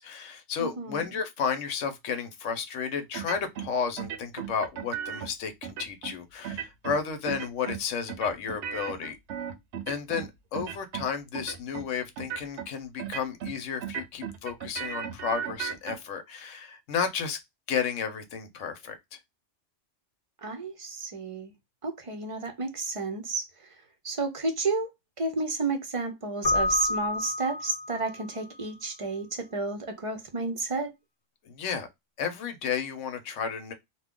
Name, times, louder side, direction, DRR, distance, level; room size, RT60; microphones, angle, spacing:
voice 1, 0.0-9.2 9.9-17.4 17.7-19.2 31.4-31.9 32.2-33.7, left 6 dB, 85° left, 1.1 m, -32 dB
voice 2, 0.6-1.1 10.1-10.2 20.4-21.5 21.8-23.5 24.0-24.9 25.2-30.9, right 3 dB, 40° right, 0.5 m, -31 dB
sound 1, 3.1-3.7 4.0-5.3 5.6-6.1 6.4-7.0 7.3-7.8 8.1-10.3 10.5-11.1 11.3-11.9 12.2-12.7 13.0-13.5 13.8-16.0, right 8 dB, 70° right, 0.9 m, -36 dB
Keyboard (musical), 26.4-28.2, left 2 dB, 45° left, 0.6 m, -29 dB
2.7 x 2.3 x 3.5 m
omnidirectional pair, 1.3 m